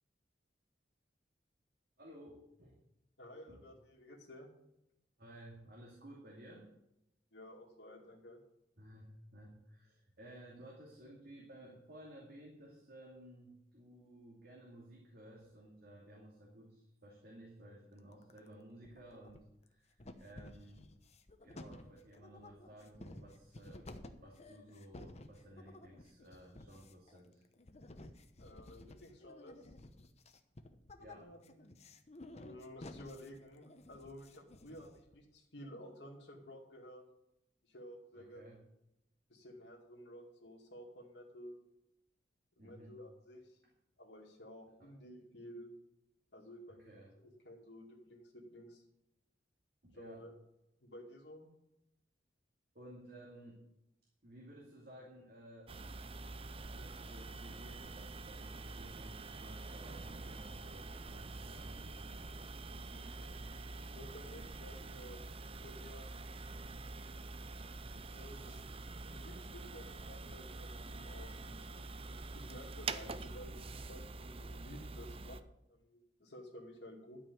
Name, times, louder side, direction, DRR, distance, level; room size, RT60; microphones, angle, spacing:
voice 1, 2.0-2.7 3.5-3.6 5.2-6.7 8.8-20.9 21.4-23.8 24.2-27.4 31.0-31.3 38.1-38.6 42.6-43.0 44.8-44.9 46.7-47.1 49.8-50.3 52.7-53.6 54.2-55.7 56.7-62.3 62.9-63.4 64.0-64.1 73.0-73.2, right 1 dB, 60° right, -3 dB, 2.6 m, -55 dB
voice 2, 3.2-4.5 7.3-8.4 28.4-29.7 31.1-31.7 32.4-37.0 37.6-38.5 39.3-41.6 42.6-43.6 44.0-45.7 46.3-48.8 49.9-50.3 50.8-51.5 63.9-66.1 68.1-68.6 69.1-73.5 73.8-75.4 75.7-77.2, equal, 80° left, -2 dB, 2.4 m, -53 dB
sound 1, 18.0-18.5 18.8-19.7 20.0-35.2, left 1 dB, 40° left, 1.0 m, -54 dB
sound 2, 55.7-75.4, right 3 dB, 35° right, 0.5 m, -46 dB
12.0 x 5.5 x 8.5 m, 0.86 s
head